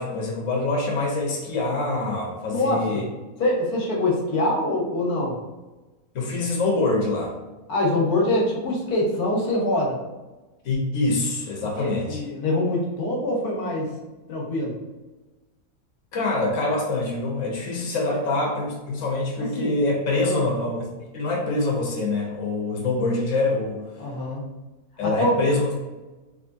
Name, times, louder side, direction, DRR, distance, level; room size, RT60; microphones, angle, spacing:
voice 1, 0.0-3.0 6.1-7.3 10.6-12.2 16.1-20.8 21.1-23.8 25.0-25.7, left 2 dB, 60° left, -2 dB, 1.2 m, -25 dB
voice 2, 2.5-3.1 3.4-5.4 7.7-10.0 11.8-13.9 14.3-14.8 18.0-18.2 19.6-19.7 20.2-20.5 24.0-24.4 25.0-25.3, left 1 dB, 90° left, -2 dB, 1.6 m, -24 dB
3.8 x 3.2 x 2.6 m, 1.1 s
omnidirectional pair, 1.6 m